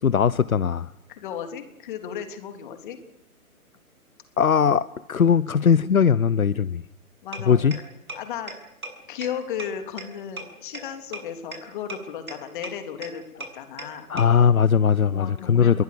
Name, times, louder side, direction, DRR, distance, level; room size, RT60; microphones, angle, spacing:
voice 1, 0.0-0.9 4.4-6.8 7.5-7.8 14.1-15.8, left 7 dB, 70° left, 19 dB, 0.9 m, -20 dB
voice 2, 1.1-3.0 7.2-7.7 8.1-8.5 9.1-14.1 15.1-15.8, left 8 dB, 35° left, 7 dB, 3.4 m, -35 dB
sound 1, 7.3-7.4 7.7-7.8 8.1-8.2 8.5-8.6 8.8-8.9 9.2-9.3 9.6-9.7 10.0-10.1 10.4-10.5 10.7-10.8 11.1-11.2 11.5-11.6 11.9-12.0 12.3-12.4 12.6-12.7 13.0-13.1 13.4-13.5 13.8-13.9 14.2-14.3, right 3 dB, 70° right, 7.6 m, -34 dB
30.0 x 22.0 x 6.9 m, 0.90 s
figure-of-eight pair, 130°, 44 cm